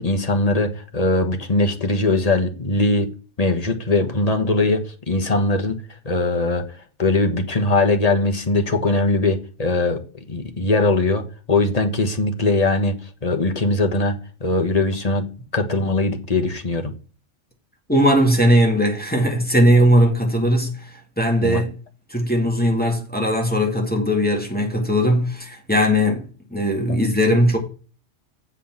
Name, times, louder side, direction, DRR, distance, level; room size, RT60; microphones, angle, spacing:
voice 1, 0.0-3.1 3.4-5.8 6.0-6.7 7.0-10.0 10.3-12.9 13.2-15.2 15.5-16.9 21.4-21.6 26.9-27.0, left 2 dB, 35° left, 1.4 m, -21 dB
voice 2, 17.9-21.8 22.1-27.6, equal, 5° left, 2.2 m, -19 dB
7.3 x 5.8 x 7.2 m
omnidirectional pair, 1.2 m